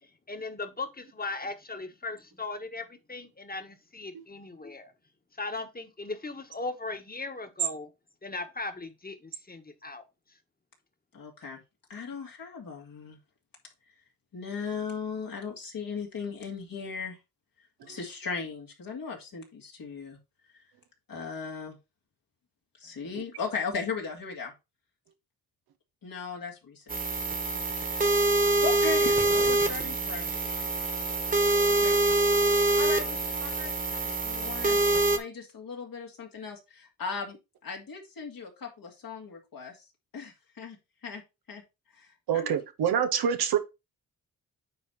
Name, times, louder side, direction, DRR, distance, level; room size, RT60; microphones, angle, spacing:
voice 1, 0.0-4.9 5.4-7.9 8.2-10.0, left 3 dB, 25° left, 1.6 m, -38 dB
voice 2, 11.1-11.6 11.9-13.2 14.3-17.2 17.9-20.2 21.1-21.8 22.8-24.5 26.0-27.0 27.7-28.3 28.6-31.1 31.6-32.0 32.4-33.7 34.0-34.8 35.1-37.4 37.6-39.8 40.1-40.8 41.0-41.2 41.5-41.6 41.9-42.5, left 5 dB, 70° left, 2.4 m, -37 dB
sound 1, 26.9-35.2, right 2 dB, 20° right, 1.5 m, -25 dB
voice 3, 42.3-43.6, right 8 dB, 85° right, 1.0 m, -26 dB
9.2 x 3.5 x 4.2 m
supercardioid pair, 45°, 37 cm